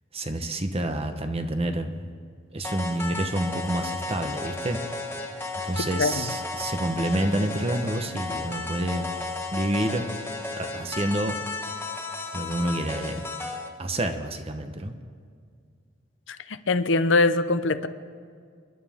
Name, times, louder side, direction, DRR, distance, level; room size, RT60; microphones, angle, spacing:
voice 1, 0.1-2.0 2.5-4.8 5.6-9.1 9.5-10.1 10.6-11.4 12.3-13.2 13.8-14.9, right 1 dB, 30° right, 7 dB, 1.0 m, -28 dB
sound 1, 2.6-13.7, left 3 dB, 10° left, 1.5 m, -34 dB
voice 2, 5.8-6.3 16.3-17.9, left 3 dB, 70° left, 11 dB, 0.7 m, -23 dB
29.5 x 11.0 x 3.6 m, 2.1 s
head